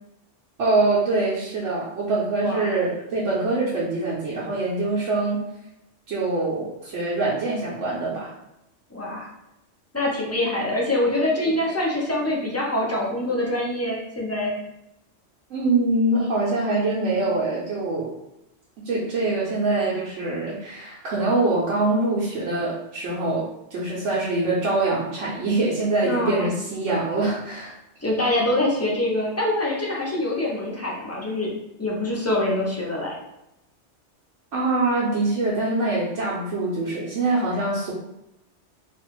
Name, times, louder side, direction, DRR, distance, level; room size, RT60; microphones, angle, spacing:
voice 1, 0.6-5.4 6.1-8.3 15.5-18.1 18.8-27.7 34.5-37.9, right 2 dB, 80° right, -7 dB, 1.0 m, -24 dB
voice 2, 8.9-9.3 9.9-14.5 26.0-26.5 28.0-31.5 31.8-33.1, left 1 dB, 20° left, -4 dB, 0.5 m, -24 dB
3.3 x 2.5 x 2.9 m, 0.87 s
omnidirectional pair, 1.2 m